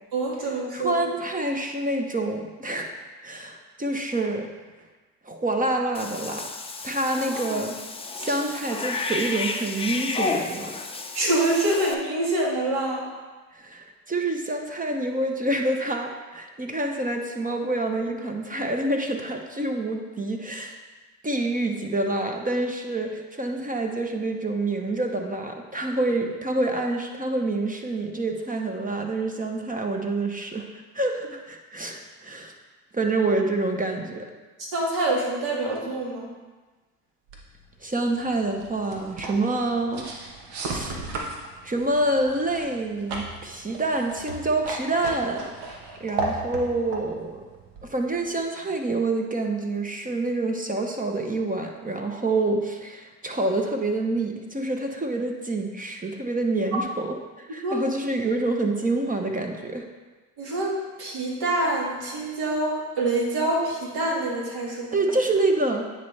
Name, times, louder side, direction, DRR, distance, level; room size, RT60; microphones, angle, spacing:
voice 1, 0.1-1.0 11.1-13.1 34.6-36.3 56.7-56.8 57.6-57.8 60.4-65.0, right 2 dB, 55° right, -3 dB, 2.0 m, -26 dB
voice 2, 0.7-2.9 3.2-4.5 5.2-6.5 6.8-7.8 8.2-10.9 13.5-20.7 21.2-30.7 30.9-32.5 32.9-34.3 37.8-40.0 40.6-41.2 41.6-45.5 46.0-47.4 47.8-59.9 64.9-65.9, right 2 dB, 20° right, 3 dB, 0.8 m, -27 dB
Cat / Bathtub (filling or washing), 5.9-11.9, left 3 dB, 15° left, 0.6 m, -31 dB
sound 1, 37.3-48.4, right 3 dB, 75° right, 1.2 m, -36 dB
9.3 x 4.3 x 3.3 m, 1.3 s
hypercardioid pair, 65°, 44 cm